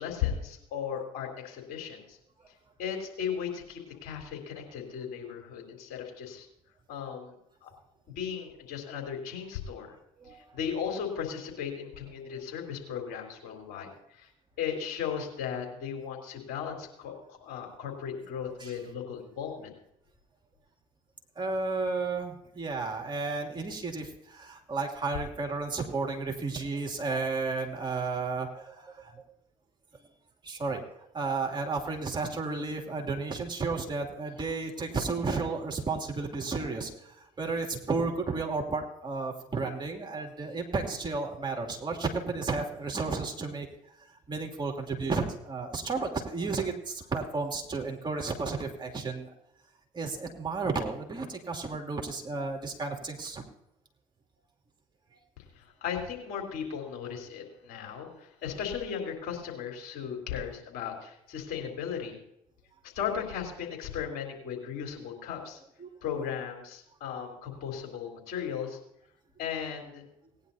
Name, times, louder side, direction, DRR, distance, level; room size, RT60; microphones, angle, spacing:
voice 1, 0.0-2.2 2.8-6.5 6.9-7.4 7.6-7.7 8.2-10.0 10.3-14.3 14.6-17.1 17.4-19.7 55.6-62.2 62.8-65.6 66.0-68.8 69.4-70.0, left 8 dB, 65° left, 1 dB, 3.7 m, -36 dB
voice 2, 10.2-10.6 18.6-18.7 21.4-29.1 30.4-30.8 31.1-43.7 44.3-49.3 49.9-53.4 57.8-57.9 65.8-65.9, right 4 dB, 25° right, 2 dB, 2.7 m, -33 dB
19.0 x 10.5 x 2.8 m, 0.78 s
hypercardioid pair, 60°, 17 cm